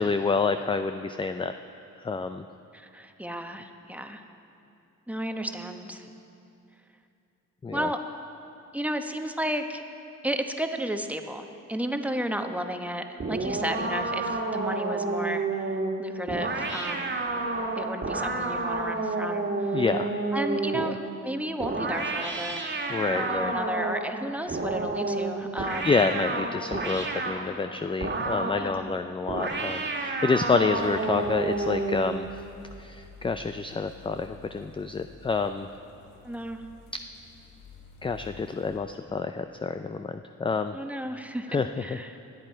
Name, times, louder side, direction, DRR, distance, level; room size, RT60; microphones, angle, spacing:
voice 1, 0.0-1.5 2.0-2.5 7.6-7.9 19.7-20.1 20.7-20.9 22.9-23.5 25.6-32.3 32.8-35.7 38.0-40.8 41.5-42.0, left 4 dB, 15° left, 9 dB, 0.4 m, -28 dB
voice 2, 2.7-4.2 5.1-6.1 7.7-8.0 8.7-9.8 10.2-17.2 17.7-19.8 20.3-21.0 21.2-22.7 23.1-26.0 28.5-28.9 36.2-36.6 40.7-42.2, right 1 dB, 5° right, 5 dB, 1.0 m, -33 dB
sound 1, 13.2-21.0 21.6-24.1 24.5-27.4 28.0-28.7 29.3-32.1, right 3 dB, 35° right, 1.6 m, -30 dB
sound 2, 30.8-38.8, left 4 dB, 80° left, 1.5 m, -50 dB
21.0 x 8.3 x 4.5 m, 2.6 s
cardioid pair, 70°, 33 cm